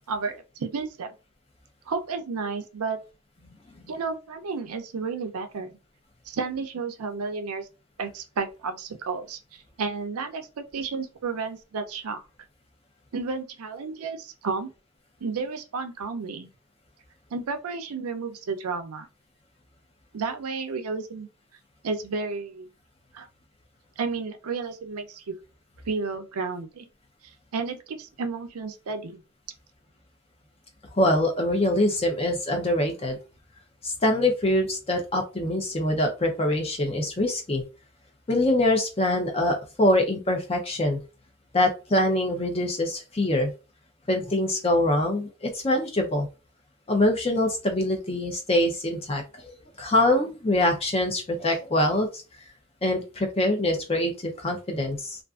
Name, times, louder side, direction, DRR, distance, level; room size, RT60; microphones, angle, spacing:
voice 1, 0.1-1.1 1.9-3.0 3.9-5.8 6.3-7.7 8.0-12.2 13.1-14.7 15.2-16.5 17.3-19.1 20.1-21.3 21.8-22.7 23.1-23.3 24.0-25.4 25.9-26.9 27.5-29.2, right 4 dB, 90° right, 0.5 m, -32 dB
voice 2, 30.9-33.2 33.8-37.6 38.3-41.0 41.5-43.5 44.1-46.3 46.9-49.5 49.8-52.2 52.8-55.2, left 1 dB, 25° left, 0.5 m, -24 dB
2.4 x 2.4 x 2.3 m
head